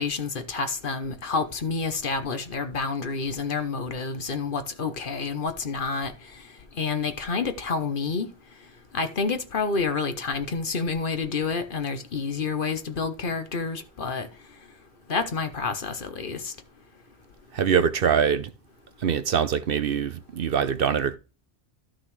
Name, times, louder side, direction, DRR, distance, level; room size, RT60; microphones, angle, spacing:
voice 1, 0.0-6.1 6.8-8.3 8.9-14.3 15.1-16.5, left 4 dB, 50° left, 1.1 m, -29 dB
voice 2, 17.5-18.5 19.0-21.2, right 7 dB, 60° right, 0.8 m, -23 dB
13.0 x 6.2 x 3.2 m
omnidirectional pair, 1.2 m